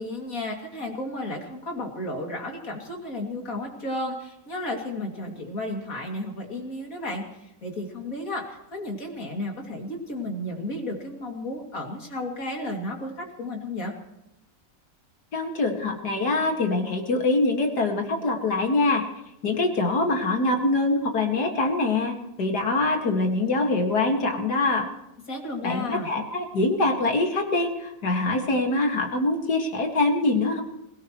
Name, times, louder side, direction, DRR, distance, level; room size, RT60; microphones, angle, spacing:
voice 1, 0.0-13.9 25.3-26.1, left 1 dB, 55° left, 1 dB, 3.1 m, -33 dB
voice 2, 15.3-19.0 19.4-24.9 25.6-30.6, left 2 dB, 70° left, 2 dB, 2.7 m, -24 dB
26.0 x 17.5 x 3.2 m, 0.86 s
omnidirectional pair, 1.8 m